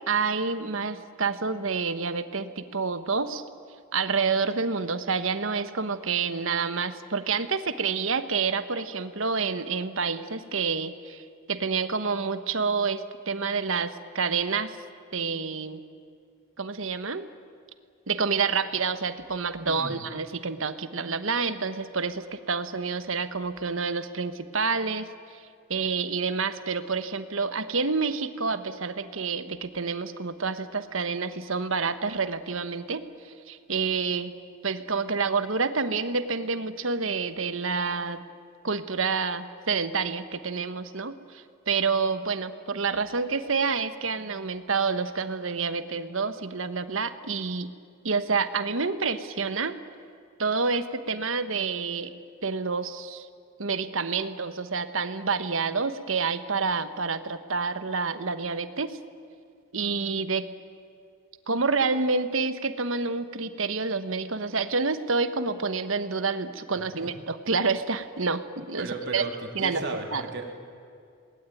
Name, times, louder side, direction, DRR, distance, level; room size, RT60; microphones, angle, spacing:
voice 1, 0.1-3.4 3.9-11.2 11.5-14.7 15.1-15.8 16.6-17.3 18.1-25.1 25.7-34.3 34.6-38.3 38.6-47.7 48.0-49.8 50.4-53.3 53.6-59.0 59.7-60.5 61.5-69.2 69.5-69.8 70.1-70.2, right 4 dB, 70° right, 11 dB, 1.3 m, -28 dB
voice 2, 19.6-20.0 66.9-67.1 68.8-70.5, right 2 dB, 55° right, 2 dB, 3.2 m, -35 dB
28.0 x 20.0 x 9.2 m, 2.3 s
head